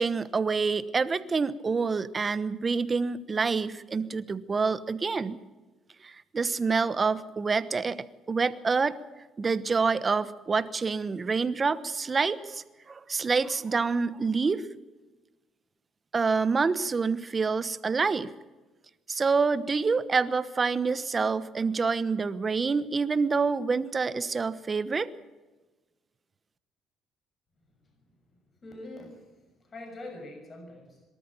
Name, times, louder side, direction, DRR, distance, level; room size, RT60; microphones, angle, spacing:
voice 1, 0.0-5.4 6.0-9.0 9.4-14.6 16.1-18.3 19.1-25.1, right 4 dB, 30° right, 14 dB, 1.1 m, -27 dB
voice 2, 28.3-31.0, left 2 dB, 35° left, 3 dB, 6.6 m, -45 dB
23.5 x 13.0 x 8.9 m, 1.2 s
cardioid pair, 105°, 0 cm